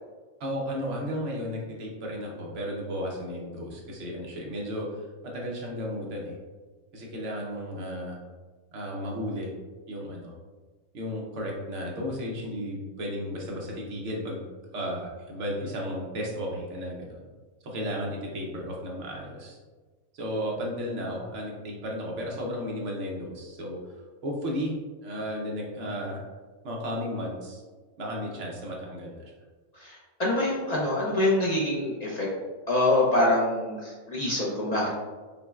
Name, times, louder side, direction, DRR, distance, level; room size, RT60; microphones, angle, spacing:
voice 1, 0.4-6.4 6.9-8.2 8.7-9.5 9.9-10.3 10.9-14.5 14.7-17.2 17.6-19.6 20.1-23.8 24.2-24.7 25.0-26.2 26.6-27.6 28.0-29.3, equal, 60° right, -2 dB, 1.0 m, -34 dB
voice 2, 29.7-32.3 32.7-34.9, left 1 dB, 50° left, -5 dB, 0.5 m, -25 dB
5.3 x 2.1 x 2.3 m, 1.3 s
omnidirectional pair, 1.5 m